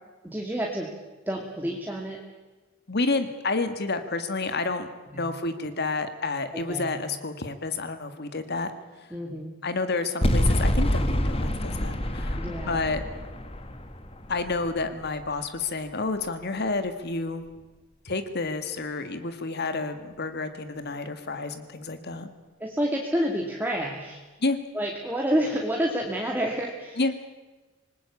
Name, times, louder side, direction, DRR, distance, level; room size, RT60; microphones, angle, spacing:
voice 1, 0.2-0.9 1.3-2.2 5.1-5.3 6.5-6.9 9.1-9.5 12.4-12.9 22.6-24.2 24.7-27.0, equal, 10° right, 0 dB, 2.3 m, -29 dB
voice 2, 2.9-8.7 9.6-13.0 14.3-17.4 18.1-22.3 24.4-24.6 27.0-27.1, left 3 dB, 55° left, 9 dB, 1.9 m, -30 dB
sound 1, 10.2-15.4, left 1 dB, 30° left, 1.8 m, -27 dB
26.5 x 20.0 x 8.5 m, 1.2 s
head